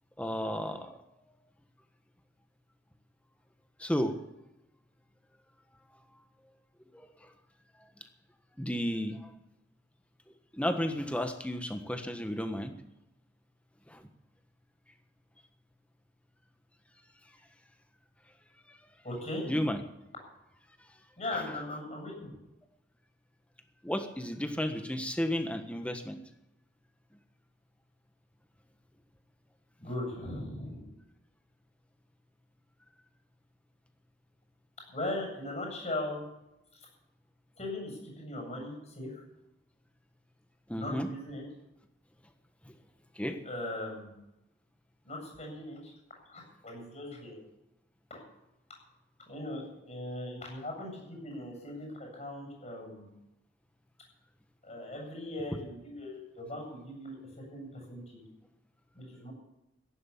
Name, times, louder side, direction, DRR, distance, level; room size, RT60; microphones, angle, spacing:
voice 1, 0.2-0.9 3.8-4.1 6.9-7.1 8.6-9.2 10.6-12.7 13.9-14.0 19.4-19.8 23.8-26.2 40.7-41.1 43.2-43.4, equal, 5° left, 6 dB, 1.4 m, -32 dB
voice 2, 19.0-19.4 21.2-22.3 29.8-30.9 34.9-36.3 36.7-36.9 37.6-39.2 40.7-41.4 43.4-44.1 45.0-45.9 46.3-47.4 48.1-48.2 49.2-53.1 54.6-58.2 58.9-59.3, left 1 dB, 40° left, 0 dB, 7.9 m, -39 dB
15.5 x 11.0 x 7.3 m, 0.89 s
head